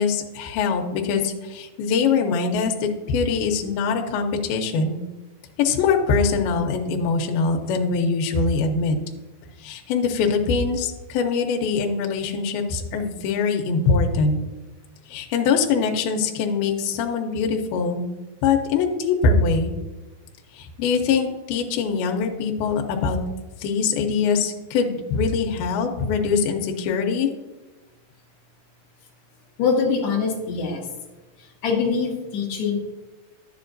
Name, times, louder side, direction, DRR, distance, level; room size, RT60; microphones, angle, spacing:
voice 1, 0.0-5.0 5.6-9.0 9.6-14.4 15.1-18.1 18.4-19.7 20.5-23.2 23.6-27.3, left 5 dB, 80° left, 3 dB, 2.6 m, -23 dB
voice 2, 29.6-30.8 31.6-32.8, left 5 dB, 65° left, -1 dB, 2.0 m, -23 dB
10.5 x 7.0 x 2.6 m, 1.1 s
omnidirectional pair, 4.3 m